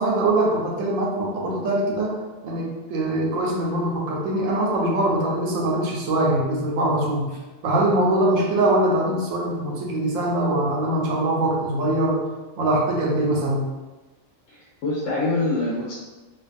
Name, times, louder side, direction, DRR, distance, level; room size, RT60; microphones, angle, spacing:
voice 1, 0.0-2.2 2.4-7.2 7.6-12.2 12.6-13.6, right 1 dB, 80° right, -2 dB, 1.0 m, -22 dB
voice 2, 14.5-15.9, left 2 dB, 70° left, -6 dB, 0.9 m, -25 dB
2.5 x 2.2 x 2.5 m, 1.2 s
omnidirectional pair, 1.3 m